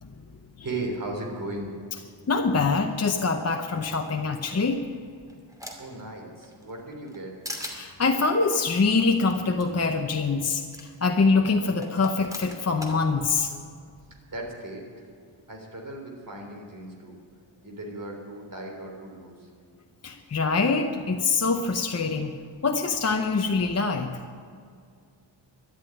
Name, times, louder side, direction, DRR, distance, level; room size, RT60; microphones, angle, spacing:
voice 1, 0.6-1.7 5.8-7.3 14.3-14.8 15.5-17.2 17.6-19.5, right 2 dB, 40° right, 1 dB, 3.6 m, -36 dB
voice 2, 2.3-4.8 7.7-13.6 20.0-22.4 22.6-24.2, left 4 dB, 30° left, 4 dB, 0.8 m, -24 dB
sound 1, 4.6-6.0 6.4-7.2 7.4-7.8 9.3-9.4 9.6-9.7 10.7-10.8 11.8-13.0, equal, 5° right, 2.5 m, -39 dB
13.0 x 11.5 x 9.2 m, 2.2 s
wide cardioid pair, 115°, 48 cm